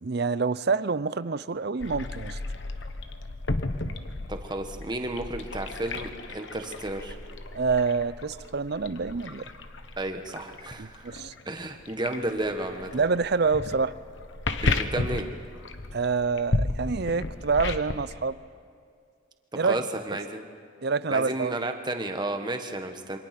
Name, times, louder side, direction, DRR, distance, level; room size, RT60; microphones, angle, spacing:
voice 1, 0.0-2.4 7.5-9.4 10.8-11.3 12.9-13.9 15.9-18.4 19.5-19.8 20.8-21.5, right 4 dB, 50° right, 16 dB, 0.5 m, -27 dB
sound 1, 1.8-18.1, left 2 dB, 60° left, 1.2 m, -34 dB
voice 2, 4.3-7.2 10.0-11.2 11.4-13.0 14.6-15.3 19.5-20.4 21.1-23.2, right 1 dB, 20° right, 5 dB, 1.3 m, -32 dB
27.5 x 24.5 x 6.0 m, 2.2 s
head